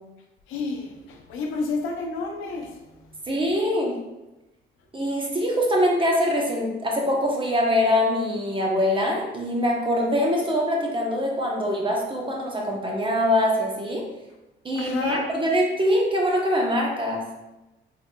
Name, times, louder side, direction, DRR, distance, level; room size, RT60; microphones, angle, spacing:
voice 1, 0.5-2.7 14.8-15.2, left 4 dB, 90° left, 2 dB, 0.6 m, -30 dB
voice 2, 3.3-4.0 4.9-14.0 14.6-17.2, equal, 25° right, -1 dB, 0.9 m, -23 dB
3.9 x 3.5 x 2.3 m, 1.0 s
cardioid pair, 90°, 20 cm